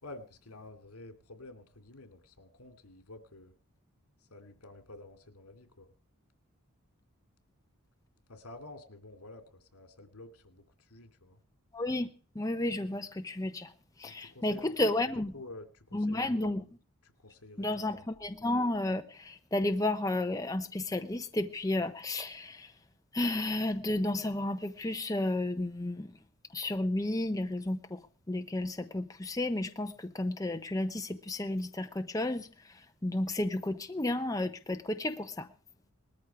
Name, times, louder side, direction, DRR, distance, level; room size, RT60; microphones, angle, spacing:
voice 1, 0.0-3.5 4.3-5.9 8.3-11.4 14.0-15.1 15.3-16.5 17.0-18.0, left 2 dB, 80° left, 8 dB, 2.7 m, -49 dB
voice 2, 11.7-12.1 12.3-13.7 14.0-15.3 15.9-16.6 17.6-22.7 23.1-26.1 26.5-28.0 28.3-35.5, left 1 dB, 15° left, 7 dB, 0.8 m, -32 dB
19.5 x 14.0 x 4.7 m, 0.39 s
head